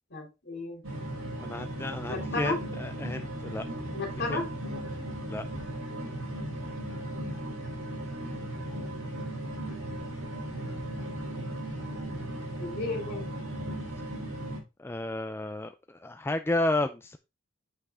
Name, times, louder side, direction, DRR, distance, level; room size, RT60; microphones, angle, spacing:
voice 1, 0.1-0.8 2.1-2.6 3.9-4.5 12.6-13.3, left 2 dB, 50° left, 2 dB, 2.9 m, -33 dB
sound 1, 0.8-14.6, right 1 dB, 90° right, 4.6 m, -36 dB
voice 2, 1.4-3.7 4.3-4.4 5.3-5.4 14.8-17.2, left 2 dB, 10° left, 8 dB, 0.4 m, -32 dB
7.7 x 5.8 x 3.6 m, 0.26 s
head